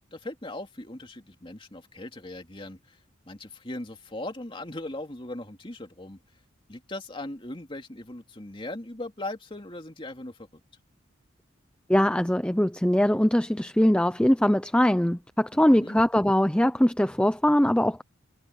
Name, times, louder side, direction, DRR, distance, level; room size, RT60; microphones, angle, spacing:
voice 1, 0.1-3.0 3.3-6.2 6.7-10.6 15.5-16.0, left 1 dB, 25° left, 2.6 m, -39 dB
voice 2, 11.9-18.0, equal, 5° left, 0.6 m, -22 dB
head